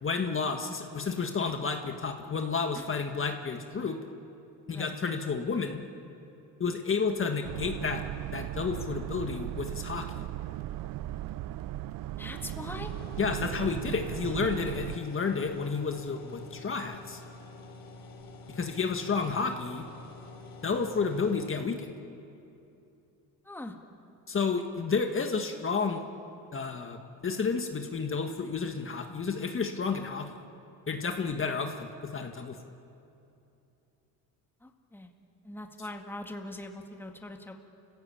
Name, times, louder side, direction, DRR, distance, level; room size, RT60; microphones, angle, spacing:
voice 1, 0.0-4.0 4.7-5.8 6.6-8.0 8.3-10.2 13.2-17.2 18.5-19.9 20.6-21.9 24.3-26.0 26.5-30.3 30.9-32.7, left 5 dB, 35° left, 4 dB, 1.8 m, -31 dB
Boat Water vehicle, 7.4-15.0, right 14 dB, 60° right, 0.6 m, -37 dB
voice 2, 12.2-12.9 23.4-23.8 34.6-35.1 35.4-37.5, left 1 dB, 5° left, 3 dB, 1.9 m, -41 dB
sound 1, 12.4-21.5, left 3 dB, 60° left, 3.3 m, -48 dB
29.5 x 16.0 x 8.6 m, 2.7 s
cardioid pair, 90°, 38 cm